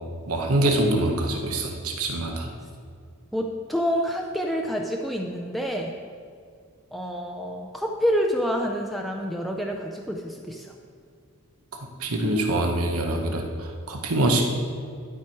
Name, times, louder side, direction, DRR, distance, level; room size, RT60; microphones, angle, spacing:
voice 1, 0.3-2.5 12.0-14.4, right 1 dB, 85° right, 2 dB, 1.0 m, -24 dB
voice 2, 3.3-5.9 6.9-10.7, equal, ahead, 1 dB, 0.4 m, -27 dB
11.5 x 4.5 x 4.6 m, 2.2 s
head